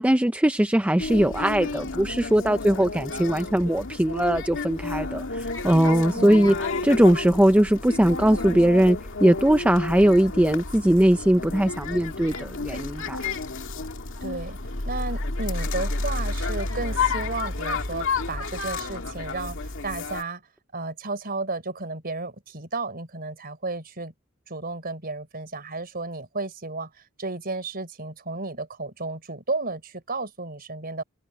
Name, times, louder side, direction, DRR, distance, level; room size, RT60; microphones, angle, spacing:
voice 1, 0.0-6.5 6.8-13.2, right 1 dB, 5° right, 0.4 m, -20 dB
sound 1, 1.0-20.2, left 3 dB, 60° left, 2.3 m, -31 dB
voice 2, 6.1-6.6 14.2-14.6 14.8-20.4 20.7-24.1 24.5-26.9 27.2-31.0, right 3 dB, 45° right, 4.6 m, -33 dB
head